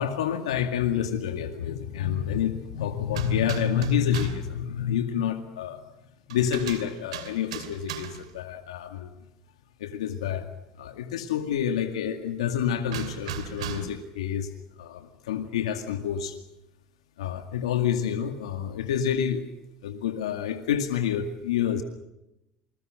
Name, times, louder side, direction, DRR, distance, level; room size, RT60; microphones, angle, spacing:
voice 1, 0.0-5.8 6.3-9.1 9.8-10.4 10.8-14.5 14.8-16.4 17.2-19.5 19.8-21.8, left 9 dB, 90° left, 7 dB, 2.2 m, -28 dB
sound 1, 3.1-4.5 6.3-8.4 12.9-14.1, right 9 dB, 90° right, 3.0 m, -37 dB
28.0 x 22.0 x 6.5 m, 0.89 s
hypercardioid pair, 85°, 3 cm